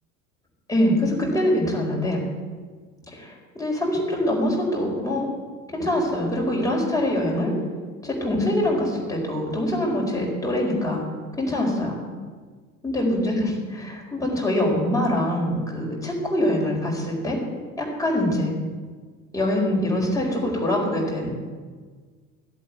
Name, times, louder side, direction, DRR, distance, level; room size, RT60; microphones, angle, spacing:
voice 1, 0.7-2.2 3.1-5.3 5.7-7.6 8.0-11.0 11.4-12.0 12.8-17.4 17.8-18.5 19.3-21.3, left 1 dB, 5° left, -2 dB, 4.6 m, -24 dB
15.5 x 8.4 x 8.1 m, 1.5 s
figure-of-eight pair, 65°, 45 cm